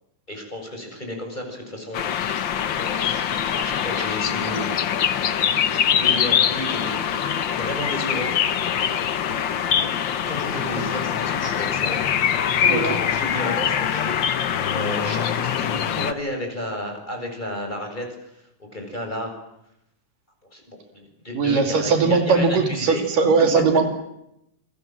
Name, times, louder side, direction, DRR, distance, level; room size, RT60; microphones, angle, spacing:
voice 1, 0.3-4.7 5.6-6.9 7.6-8.4 10.3-12.0 12.6-14.2 14.4-19.3 20.5-23.0, left 1 dB, 15° left, 3 dB, 7.0 m, -32 dB
sound 1, 1.9-16.1, left 9 dB, 70° left, 1.1 m, -23 dB
voice 2, 12.7-13.0 21.3-23.8, right 4 dB, 80° right, 5 dB, 4.3 m, -19 dB
28.0 x 23.0 x 7.6 m, 0.81 s
omnidirectional pair, 3.8 m